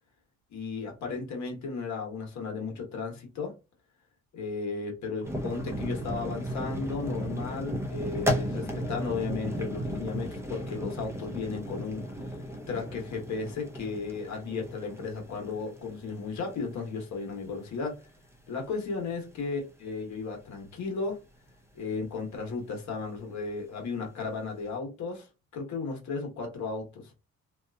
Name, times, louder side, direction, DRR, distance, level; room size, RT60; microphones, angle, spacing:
voice 1, 0.5-3.5 4.3-12.0 12.7-18.0 18.5-21.2 21.7-25.3 25.5-27.1, left 4 dB, 65° left, 1.3 m, -35 dB
sound 1, 5.2-17.8 18.0-18.2 18.7-18.8 19.1-19.3 20.2-20.4, equal, 10° right, 0.7 m, -35 dB
2.8 x 2.4 x 2.3 m
cardioid pair, 90°, 30 cm